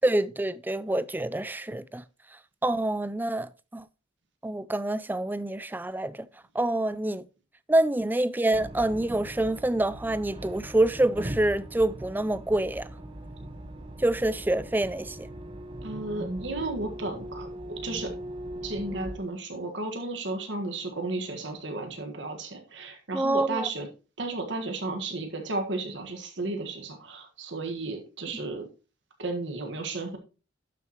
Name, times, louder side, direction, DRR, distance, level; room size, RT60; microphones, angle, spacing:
voice 1, 0.0-2.0 2.6-3.9 4.4-6.3 6.5-7.2 7.7-12.9 14.0-15.3 23.1-23.7, right 1 dB, 10° right, 0.3 m, -26 dB
sound 1, 8.5-19.2, right 1 dB, 25° right, 1.0 m, -40 dB
voice 2, 15.8-18.1 18.6-23.9 24.2-28.7 29.2-30.2, right 2 dB, 65° right, 1.6 m, -33 dB
12.0 x 7.0 x 3.0 m
head